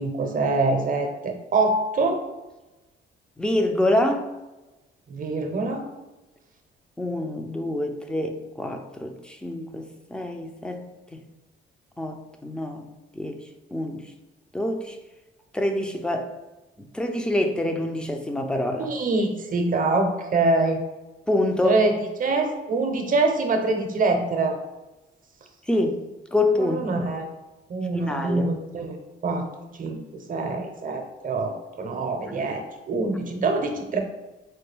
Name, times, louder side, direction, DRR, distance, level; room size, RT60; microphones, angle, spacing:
voice 1, 0.0-2.2 5.1-5.9 18.8-20.8 21.6-21.9 22.2-24.6 26.6-27.3 27.7-29.5 29.8-34.0, right 3 dB, 45° right, 4 dB, 0.6 m, -25 dB
voice 2, 3.4-4.3 7.0-10.9 11.1-11.2 12.0-13.4 13.7-14.0 14.5-15.0 15.5-16.3 16.8-18.9 21.3-21.8 25.7-26.0 26.3-27.1 27.9-28.5, left 1 dB, 5° left, 5 dB, 0.4 m, -26 dB
4.4 x 2.2 x 3.3 m, 1.1 s
cardioid pair, 90°, 20 cm